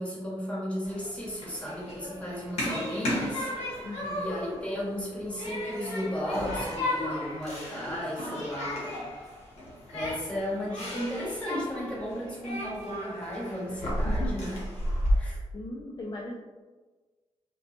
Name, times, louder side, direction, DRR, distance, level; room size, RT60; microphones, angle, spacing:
voice 1, 0.0-3.5 4.2-8.8 9.9-14.6 15.2-15.4, equal, 10° left, -6 dB, 1.1 m, -34 dB
Human group actions, 0.8-15.1, left 1 dB, 75° left, 0.8 m, -34 dB
voice 2, 3.8-4.3 14.0-14.3 15.1-15.2 15.5-16.4, left 2 dB, 40° left, -4 dB, 0.4 m, -38 dB
2.5 x 2.2 x 2.4 m, 1.3 s
cardioid pair, 60°, 11 cm